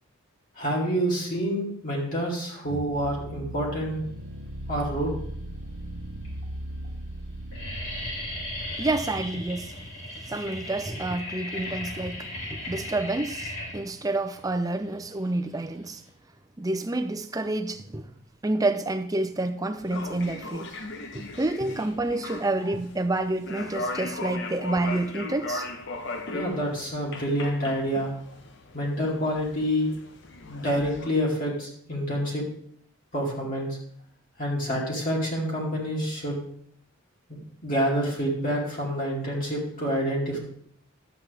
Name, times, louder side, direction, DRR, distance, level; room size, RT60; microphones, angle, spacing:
voice 1, 0.5-4.0 4.7-5.1 26.3-28.1 28.7-29.9 30.4-32.4 33.1-33.8 34.4-36.4 37.3-40.4, equal, 40° left, 2.6 m, -27 dB
sound 1, 2.7-9.8, right 1 dB, 80° right, 0.7 m, -38 dB
sound 2, 4.9-5.5 6.2-6.3 6.5-6.9 7.2-16.1, left 1 dB, 75° left, 4.2 m, -37 dB
voice 2, 8.8-9.8 10.3-16.0 16.6-18.1 18.4-20.7 21.1-25.7, right 2 dB, 15° right, 0.5 m, -29 dB
sound 3, 19.8-31.1, left 2 dB, 55° left, 1.0 m, -38 dB
12.0 x 7.9 x 3.4 m
head